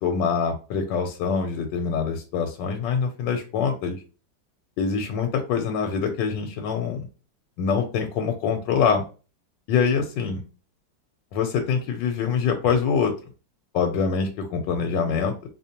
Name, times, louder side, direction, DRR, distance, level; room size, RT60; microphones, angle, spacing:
voice 1, 0.0-4.0 4.8-7.1 7.6-9.0 9.7-10.4 11.3-13.1 13.7-15.3, left 6 dB, 80° left, 4 dB, 1.3 m, -24 dB
4.3 x 2.7 x 2.8 m, 0.34 s
omnidirectional pair, 2.0 m